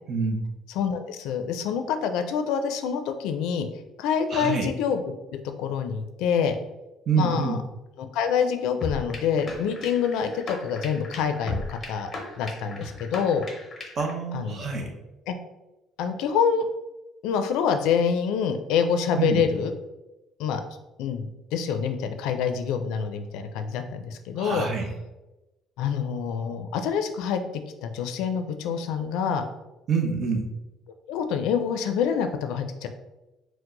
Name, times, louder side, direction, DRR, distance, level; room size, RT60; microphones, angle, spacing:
voice 1, 0.1-0.5 4.3-4.7 7.1-7.6 14.0-14.9 19.2-19.4 24.4-24.9 29.9-30.5, right 5 dB, 35° right, 3 dB, 0.7 m, -26 dB
voice 2, 0.8-3.7 4.0-5.0 5.3-6.6 7.1-7.6 8.0-12.1 12.4-13.4 14.3-14.7 15.3-15.4 16.0-16.7 17.2-19.7 20.4-20.6 21.0-24.7 25.8-29.5 31.1-32.9, left 7 dB, 90° left, 7 dB, 0.4 m, -26 dB
sound 1, 8.8-14.1, left 3 dB, 25° left, 0.7 m, -37 dB
4.6 x 2.1 x 3.8 m, 1.0 s
cardioid pair, 160°, 0 cm